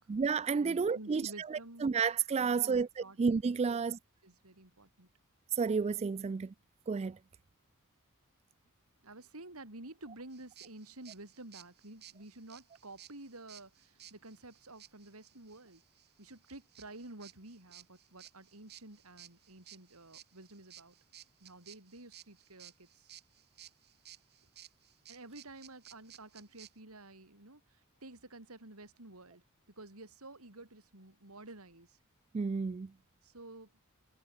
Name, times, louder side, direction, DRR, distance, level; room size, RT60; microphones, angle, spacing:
voice 1, 0.1-4.0 5.5-6.5 6.9-7.2 32.3-32.9, right 5 dB, 30° right, 0.3 m, -31 dB
voice 2, 0.6-1.9 2.4-3.2 3.6-3.8 4.2-5.1 9.0-15.8 16.2-20.9 21.4-23.1 25.1-29.4 29.8-32.0 33.2-33.7, right 2 dB, 85° right, 4.6 m, -51 dB
sound 1, 10.3-26.7, right 12 dB, 50° right, 3.0 m, -56 dB
head